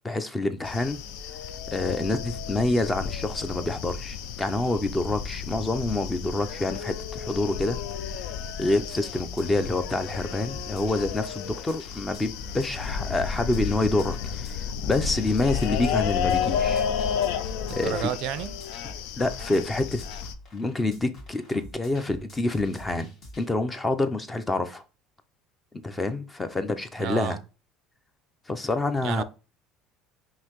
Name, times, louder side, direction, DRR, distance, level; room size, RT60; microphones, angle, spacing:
voice 1, 0.0-1.0 1.7-7.8 8.6-16.9 17.7-18.1 19.2-20.0 20.5-24.8 25.8-27.4 28.5-29.2, left 2 dB, 15° left, 0.5 m, -27 dB
sound 1, 0.6-20.3, left 7 dB, 80° left, 0.4 m, -32 dB
sound 2, 8.7-23.5, left 1 dB, 45° left, 1.6 m, -46 dB
voice 2, 17.7-18.5 27.0-27.4 29.0-29.2, right 12 dB, 65° right, 0.3 m, -31 dB
5.4 x 2.8 x 3.0 m
cardioid pair, 145°, 0 cm